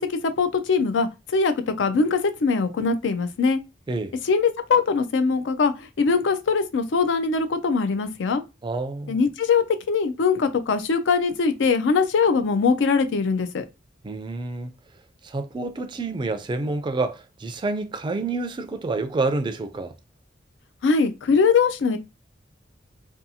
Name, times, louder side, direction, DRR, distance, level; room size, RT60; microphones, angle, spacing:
voice 1, 0.0-3.6 4.2-8.4 9.1-13.6 20.8-22.0, left 5 dB, 85° left, 0.4 m, -22 dB
voice 2, 8.6-9.2 14.0-14.7 15.2-19.9, right 3 dB, 25° right, 0.3 m, -28 dB
2.6 x 2.3 x 2.7 m
head